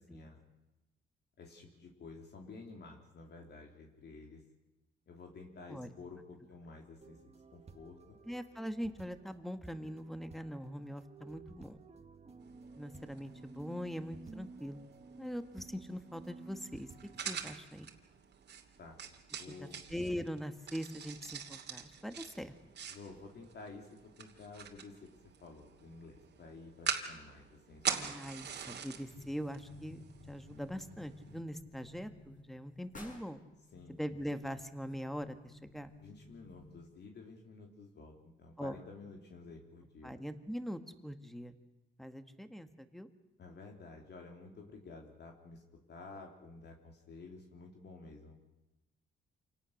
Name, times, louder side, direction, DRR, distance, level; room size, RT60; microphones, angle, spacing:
voice 1, 1.4-4.4 5.1-7.2 7.5-8.2 18.8-19.0 19.4-19.8 22.9-25.1 25.4-28.1 33.7-34.0 36.0-40.1 43.4-45.6 45.9-48.4, left 3 dB, 55° left, 1 dB, 3.3 m, -52 dB
sound 1, 7.0-17.6, right 4 dB, 30° right, 1.8 m, -54 dB
voice 2, 8.2-11.8 12.8-14.8 15.2-16.9 17.2-17.9 19.5-22.5 27.9-33.4 33.9-35.9 38.6-38.8 40.0-41.5 42.0-43.1, equal, ahead, 9 dB, 1.8 m, -42 dB
sound 2, 12.4-31.4, right 7 dB, 60° right, 2.7 m, -45 dB
sound 3, 29.1-36.9, left 2 dB, 40° left, 7.7 m, -55 dB
27.0 x 18.5 x 6.6 m, 1.0 s
cardioid pair, 90°, 20 cm